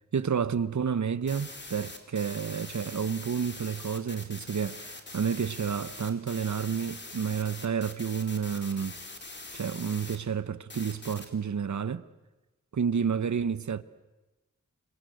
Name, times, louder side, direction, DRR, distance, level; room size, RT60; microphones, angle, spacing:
voice 1, 0.1-9.0 9.5-12.0 12.7-13.8, right 6 dB, 60° right, 1.1 m, -30 dB
sound 1, 1.3-10.2 10.7-11.3, left 2 dB, 35° left, 3.5 m, -43 dB
29.0 x 24.5 x 7.9 m
wide cardioid pair, 85°, 32 cm